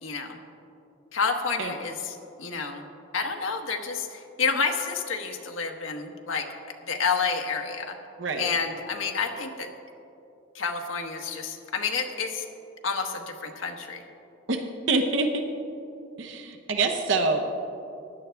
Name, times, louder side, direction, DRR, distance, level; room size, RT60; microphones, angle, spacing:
voice 1, 0.0-0.4 1.1-2.8 3.1-6.5 6.9-8.0 8.4-9.7 10.5-12.5 12.8-14.0, left 5 dB, 80° left, 3 dB, 1.0 m, -29 dB
voice 2, 8.2-8.5 14.5-15.5 16.2-17.5, right 3 dB, 65° right, 5 dB, 0.7 m, -26 dB
15.5 x 10.5 x 3.4 m, 2.8 s
head